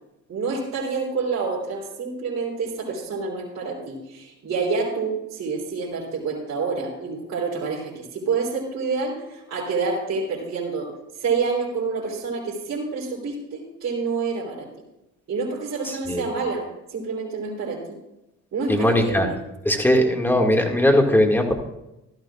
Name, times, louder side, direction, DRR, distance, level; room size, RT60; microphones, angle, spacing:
voice 1, 0.3-10.9 11.2-14.7 15.3-18.0 18.5-19.4, right 4 dB, 60° right, -5 dB, 3.7 m, -28 dB
voice 2, 15.9-16.2 18.7-19.3 19.7-21.7, left 1 dB, 5° left, 2 dB, 2.0 m, -19 dB
15.5 x 13.0 x 2.4 m, 0.91 s
cardioid pair, 90°, 30 cm